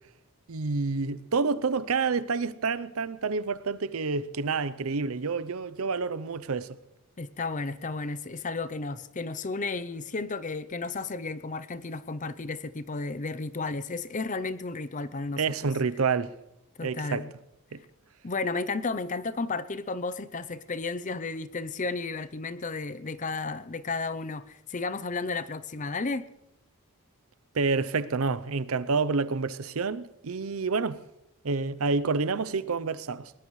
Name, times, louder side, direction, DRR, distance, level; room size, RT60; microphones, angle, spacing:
voice 1, 0.5-6.8 15.4-16.3 16.8-17.3 17.7-17.8 27.5-31.0 31.4-33.3, right 4 dB, 75° right, 0.7 m, -28 dB
voice 2, 7.2-15.7 16.8-17.3 18.2-26.3, left 3 dB, 35° left, 0.6 m, -33 dB
21.5 x 19.5 x 3.2 m
head